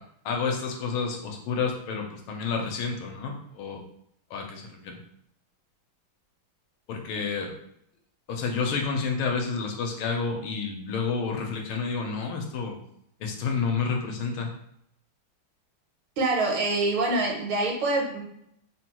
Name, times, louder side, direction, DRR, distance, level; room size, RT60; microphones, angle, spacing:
voice 1, 0.2-3.8 4.3-5.0 6.9-7.5 8.3-12.8 13.2-14.5, left 5 dB, 85° left, 2 dB, 1.5 m, -29 dB
voice 2, 16.2-18.2, right 2 dB, 80° right, -1 dB, 1.5 m, -25 dB
3.7 x 2.2 x 2.9 m, 0.73 s
omnidirectional pair, 2.2 m